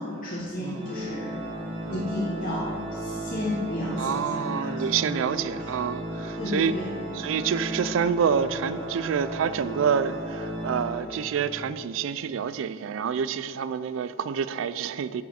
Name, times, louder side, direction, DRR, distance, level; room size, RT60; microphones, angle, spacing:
voice 1, 0.0-1.3 1.9-5.7 6.4-6.9, left 1 dB, 45° left, 1.0 m, -33 dB
voice 2, 0.6-0.9 1.9-2.1 4.0-6.8 7.1-15.2, right 7 dB, 70° right, 0.3 m, -28 dB
Organ, 0.7-11.6, right 1 dB, 25° right, 1.0 m, -35 dB
9.4 x 6.3 x 4.2 m
head